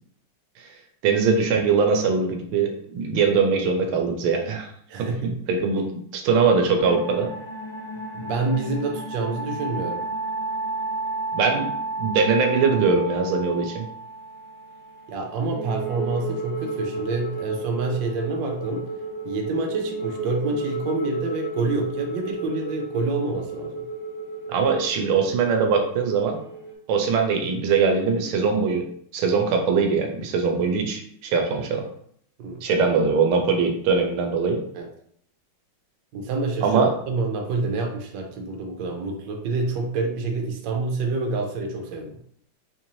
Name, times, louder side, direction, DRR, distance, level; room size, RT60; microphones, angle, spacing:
voice 1, 1.0-4.7 5.0-5.9 6.1-7.3 11.3-11.7 12.0-13.9 24.5-26.4 26.9-28.8 29.1-31.8 32.6-34.6 36.6-36.9, right 5 dB, 90° right, 4 dB, 1.5 m, -22 dB
voice 2, 4.9-5.4 8.1-10.0 15.1-18.9 19.2-23.8 32.4-32.6 34.7-34.9 36.1-42.2, right 3 dB, 70° right, 2 dB, 1.3 m, -27 dB
sound 1, 6.8-26.7, right 2 dB, 70° left, 1.9 m, -33 dB
4.2 x 2.6 x 3.0 m, 0.65 s
omnidirectional pair, 2.3 m